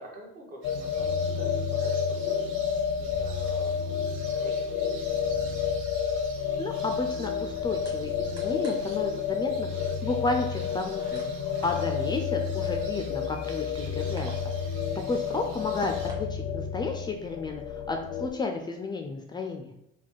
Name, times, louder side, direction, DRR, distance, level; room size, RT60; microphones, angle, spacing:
voice 1, 0.0-2.7 3.0-5.6 11.6-11.9, right 1 dB, 45° right, 0 dB, 1.3 m, -47 dB
sound 1, 0.6-18.3, left 6 dB, 90° left, 0.4 m, -30 dB
sound 2, 0.6-16.1, right 3 dB, 75° right, 1.1 m, -49 dB
sound 3, 6.5-16.2, right 2 dB, 20° right, 1.3 m, -52 dB
voice 2, 6.6-14.3 15.1-19.7, left 3 dB, 20° left, 3 dB, 0.4 m, -32 dB
4.1 x 2.3 x 4.5 m, 0.83 s
cardioid pair, 140°, 21 cm